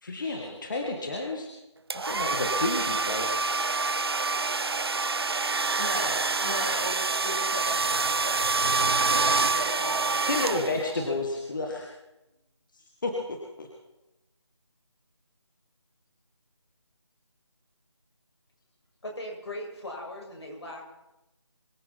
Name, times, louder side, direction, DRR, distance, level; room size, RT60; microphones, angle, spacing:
voice 1, 0.0-1.5 1.9-3.4 10.3-11.9 13.0-13.7, left 2 dB, 40° left, 0 dB, 2.1 m, -31 dB
sound 1, 1.9-11.0, right 4 dB, 55° right, 0.7 m, -27 dB
voice 2, 5.8-10.9, equal, 5° left, -3 dB, 0.5 m, -38 dB
voice 3, 19.0-20.8, left 1 dB, 60° left, 0 dB, 6.2 m, -38 dB
24.0 x 13.5 x 4.3 m, 0.93 s
figure-of-eight pair, 170°, 15 cm